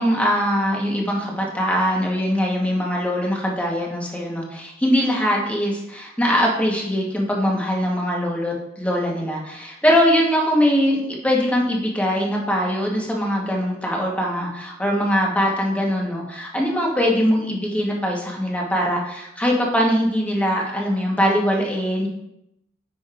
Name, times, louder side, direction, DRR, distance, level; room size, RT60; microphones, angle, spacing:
voice 1, 0.0-22.1, equal, 5° left, -2 dB, 1.2 m, -22 dB
9.4 x 5.2 x 2.5 m, 0.84 s
head